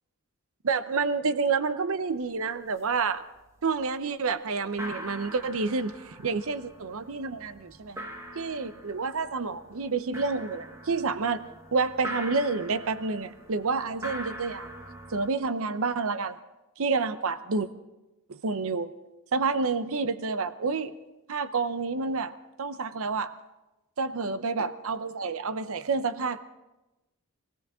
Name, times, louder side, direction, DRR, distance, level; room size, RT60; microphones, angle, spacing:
voice 1, 0.6-3.2 3.6-8.0 8.3-14.7 15.1-16.4 16.8-17.7 18.3-18.9 19.3-20.9 21.3-22.3 22.6-23.3 24.0-26.4, right 4 dB, 70° right, 12 dB, 0.7 m, -29 dB
sound 1, 2.1-2.2 2.5-3.0 3.4-3.9 4.3-4.4 4.6-15.3, right 1 dB, 15° right, 1.4 m, -43 dB
23.5 x 16.5 x 3.7 m, 1.0 s
head